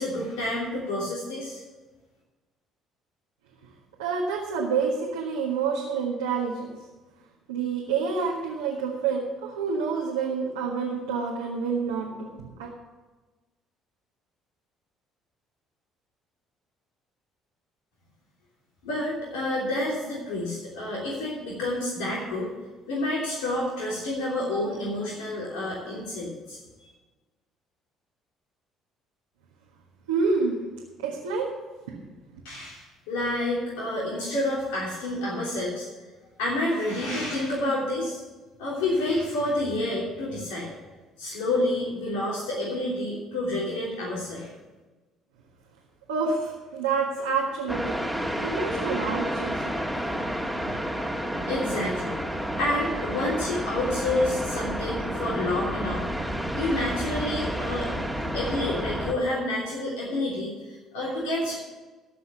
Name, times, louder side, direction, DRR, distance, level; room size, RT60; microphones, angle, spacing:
voice 1, 0.0-1.6 18.8-22.5 22.9-26.6 32.4-35.9 36.4-38.2 38.6-40.7 41.2-44.5 51.5-52.2 52.6-56.0 56.5-57.9 58.1-60.5 60.9-61.6, left 1 dB, 80° left, -5 dB, 3.2 m, -29 dB
voice 2, 4.0-6.7 7.5-12.7 30.1-30.6 31.0-31.5 31.9-32.0 46.1-48.0 48.4-49.8 50.5-50.6, right 5 dB, 90° right, -2 dB, 1.5 m, -28 dB
sound 1, 47.7-59.1, equal, ahead, 1.9 m, -30 dB
15.0 x 5.7 x 8.3 m, 1.2 s
hypercardioid pair, 60°, 0 cm